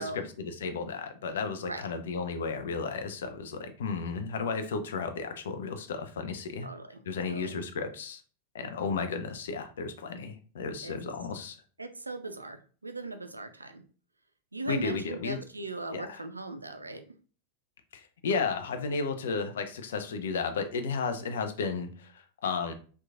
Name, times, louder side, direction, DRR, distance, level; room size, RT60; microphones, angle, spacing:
voice 1, 0.0-6.7 7.1-8.2 8.5-11.6 14.7-15.4 15.9-16.2 17.9-22.7, left 5 dB, 60° left, 7 dB, 0.4 m, -33 dB
voice 2, 6.6-7.0 7.3-7.6 10.8-11.0 11.8-13.8 14.5-17.0, right 2 dB, 80° right, 8 dB, 0.3 m, -39 dB
2.9 x 2.2 x 2.3 m, 0.39 s
figure-of-eight pair, 90°, 0 cm